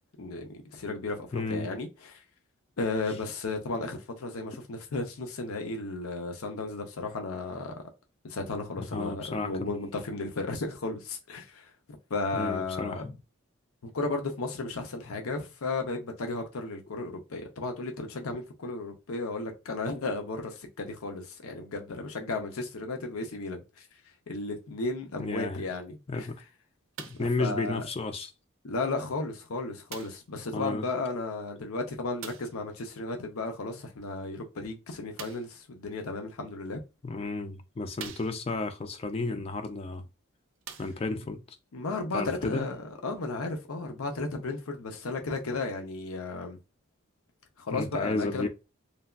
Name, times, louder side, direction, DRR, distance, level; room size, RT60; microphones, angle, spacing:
voice 1, 0.2-2.2 2.8-7.8 8.2-11.7 12.1-13.0 13.8-23.9 24.3-26.3 27.2-27.8 28.6-36.8 41.7-46.6 47.6-48.5, left 3 dB, 90° left, 0.6 m, -34 dB
voice 2, 1.3-1.7 8.9-9.5 12.3-13.2 25.2-25.6 26.1-26.4 27.0-28.3 30.5-30.9 37.0-40.0 40.8-41.4 42.1-42.7 47.7-48.5, left 3 dB, 25° left, 0.3 m, -32 dB
sound 1, 26.9-27.4 28.3-28.4 29.9-30.3 32.2-32.6 35.1-35.6 36.6-36.7 37.3-37.4 37.9-38.7 39.9-40.0 40.6-41.3 42.1-42.2, right 7 dB, 65° right, 0.5 m, -44 dB
3.2 x 2.3 x 2.3 m
head